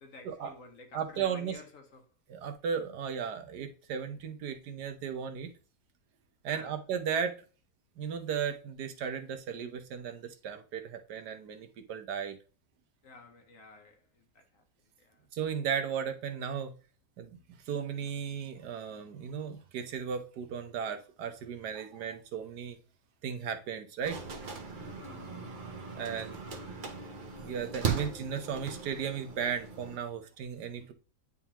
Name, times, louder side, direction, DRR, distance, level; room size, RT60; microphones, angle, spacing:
voice 1, 0.0-2.1 6.5-6.8 13.0-14.6 15.0-15.2 24.7-25.7 26.0-26.6, left 4 dB, 55° left, 1.1 m, -52 dB
voice 2, 0.9-1.5 2.3-5.5 6.4-7.3 8.0-12.4 15.3-16.7 17.2-17.3 17.7-22.8 23.2-24.2 26.0-26.4 27.4-30.9, right 7 dB, 75° right, 1.4 m, -35 dB
sound 1, 24.0-30.0, right 5 dB, 40° right, 0.7 m, -38 dB
9.1 x 3.6 x 2.9 m
omnidirectional pair, 1.8 m